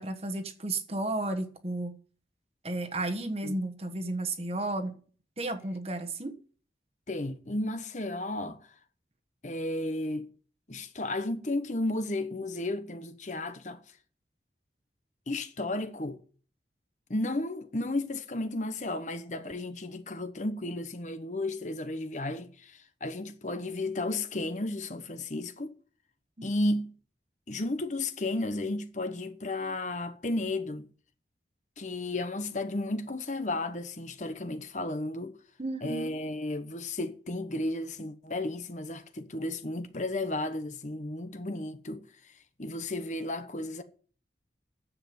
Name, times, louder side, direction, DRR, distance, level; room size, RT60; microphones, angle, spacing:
voice 1, 0.0-2.0 2.6-4.9 5.4-6.3 26.4-26.5 35.6-36.1, right 2 dB, 35° right, 1.4 m, -33 dB
voice 2, 7.1-8.7 9.4-10.3 10.7-13.8 15.3-16.2 17.1-25.7 26.4-26.9 27.5-30.9 31.8-35.4 35.8-42.3 42.6-43.8, left 2 dB, 40° left, 1.1 m, -33 dB
10.0 x 7.8 x 9.4 m
head